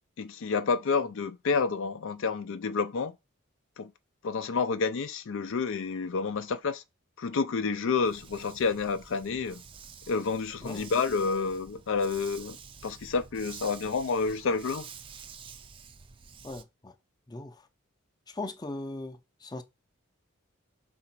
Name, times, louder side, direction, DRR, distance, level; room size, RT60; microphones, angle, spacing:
voice 1, 0.2-3.2 3.8-3.9 4.2-6.8 7.2-9.6 10.1-12.6 12.8-14.9, left 4 dB, 60° left, 0.4 m, -29 dB
Dog, 8.0-16.6, right 6 dB, 25° right, 0.5 m, -49 dB
voice 2, 16.4-16.9 17.3-17.7 18.3-19.6, left 2 dB, 20° left, 0.6 m, -39 dB
4.8 x 4.1 x 5.9 m
head